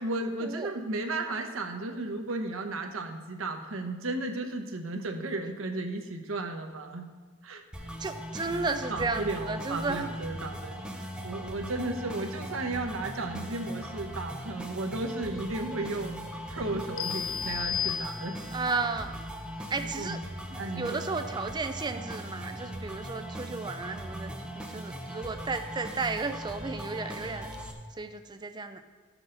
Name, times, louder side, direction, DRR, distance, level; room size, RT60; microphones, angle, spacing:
voice 1, 0.0-7.1 7.4-7.6 8.9-18.4 19.8-21.1, right 2 dB, 75° right, 5 dB, 0.9 m, -34 dB
sound 1, 7.7-27.7, equal, 5° right, 0.8 m, -39 dB
voice 2, 8.0-10.1 18.5-19.1 19.7-20.2 20.8-27.5 28.0-28.8, right 3 dB, 20° right, 8 dB, 0.4 m, -33 dB
sound 2, 17.0-18.7, left 8 dB, 65° left, 0.4 m, -33 dB
13.5 x 6.2 x 3.8 m, 1.4 s
head